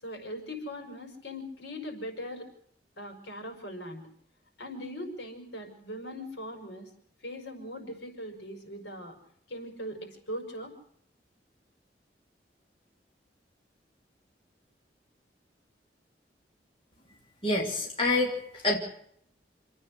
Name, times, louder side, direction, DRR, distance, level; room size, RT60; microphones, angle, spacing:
voice 1, 0.0-2.5 3.0-4.0 4.6-6.9 7.2-9.2 9.5-10.7, equal, 80° left, 4 dB, 5.7 m, -40 dB
voice 2, 17.4-18.8, left 2 dB, 30° left, -2 dB, 3.5 m, -27 dB
27.5 x 9.6 x 9.9 m, 0.69 s
head